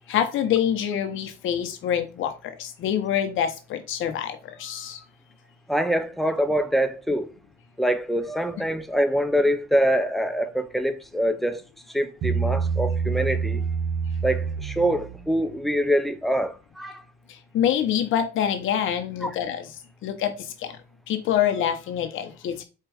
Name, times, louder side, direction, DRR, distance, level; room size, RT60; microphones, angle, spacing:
voice 1, 0.1-5.0 17.3-19.7 20.0-20.8 21.1-22.6, left 9 dB, 80° left, 0.9 m, -26 dB
voice 2, 5.7-7.3 7.8-11.6 11.9-13.7 14.2-17.0 19.2-19.3, equal, ahead, 0.7 m, -24 dB
Bass guitar, 12.2-15.6, right 6 dB, 80° right, 1.2 m, -27 dB
4.6 x 2.5 x 4.7 m
cardioid pair, 90°, 20 cm